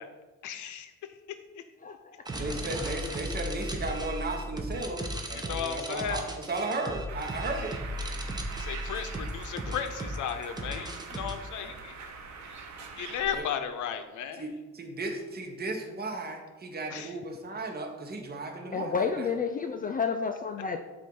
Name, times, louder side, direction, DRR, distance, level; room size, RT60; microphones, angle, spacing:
voice 1, 0.4-0.9 5.5-6.2 8.6-12.0 13.0-14.5 16.9-17.1, left 8 dB, 75° left, 8 dB, 0.7 m, -35 dB
voice 2, 1.8-2.2 18.7-20.8, left 5 dB, 30° left, 6 dB, 0.4 m, -30 dB
sound 1, 2.3-11.3, right 1 dB, 15° right, 0.7 m, -36 dB
voice 3, 2.4-7.8 8.9-9.0 11.6-11.8 13.3-13.5 14.4-19.3, right 2 dB, 30° right, 2 dB, 1.0 m, -35 dB
Bird, 7.1-13.4, right 4 dB, 70° right, 0.9 m, -43 dB
7.2 x 2.6 x 5.4 m, 1.2 s
cardioid pair, 90°, 30 cm